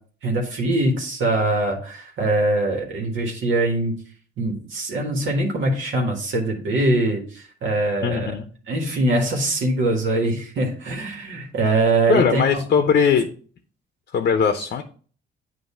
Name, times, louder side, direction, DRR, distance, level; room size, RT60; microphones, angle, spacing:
voice 1, 0.2-3.9 4.4-8.3 8.7-12.6, right 2 dB, 75° right, 0 dB, 1.5 m, -22 dB
voice 2, 8.0-8.5 12.1-13.3 14.1-14.8, left 6 dB, 55° left, 7 dB, 0.7 m, -19 dB
7.9 x 2.7 x 5.4 m, 0.43 s
cardioid pair, 90°, 20 cm